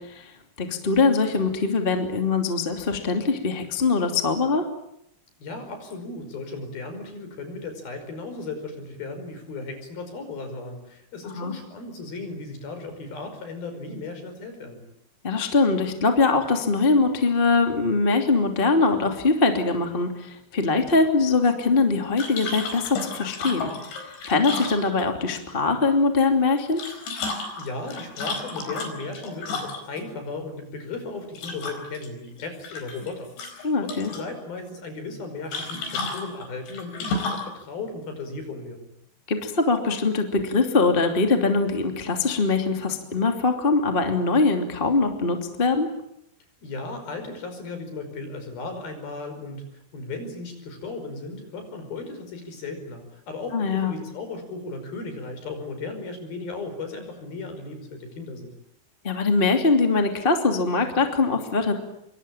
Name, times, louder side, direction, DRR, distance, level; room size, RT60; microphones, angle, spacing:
voice 1, 0.6-4.6 11.2-11.5 15.2-26.8 33.6-34.1 39.3-45.9 53.5-54.0 59.0-61.7, left 3 dB, 15° left, 5 dB, 2.1 m, -22 dB
voice 2, 5.4-14.8 27.6-38.8 46.6-49.7 49.9-58.5, left 3 dB, 55° left, 7 dB, 7.0 m, -36 dB
sound 1, 22.2-25.3 26.6-30.0 31.4-32.1 32.4-33.1 33.4-34.3 35.5-37.5, left 3 dB, 80° left, 6.9 m, -32 dB
26.5 x 24.5 x 8.9 m, 0.76 s
omnidirectional pair, 5.1 m